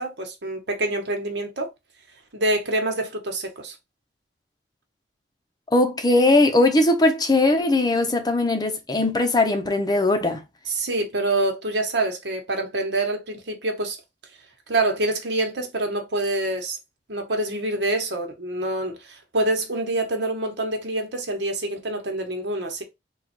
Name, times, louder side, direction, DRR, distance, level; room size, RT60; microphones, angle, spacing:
voice 1, 0.0-1.7 2.3-3.7 10.6-14.0 14.7-16.8 17.1-22.8, right 2 dB, 65° right, 1.2 m, -26 dB
voice 2, 5.7-10.4, left 2 dB, 20° left, 0.7 m, -20 dB
3.8 x 2.4 x 4.4 m
head